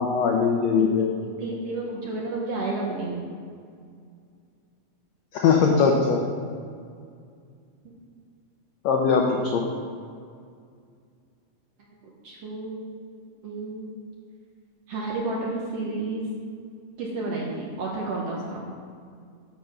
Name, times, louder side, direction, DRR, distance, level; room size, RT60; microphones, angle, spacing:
voice 1, 0.0-1.1 5.3-6.2 8.8-9.6, left 5 dB, 85° left, 1 dB, 1.5 m, -21 dB
voice 2, 0.8-3.2 7.9-8.0 12.0-13.1 13.4-14.0 14.9-16.3 17.0-18.6, right 2 dB, 65° right, -3 dB, 1.7 m, -31 dB
7.5 x 6.8 x 5.9 m, 2.2 s
omnidirectional pair, 4.0 m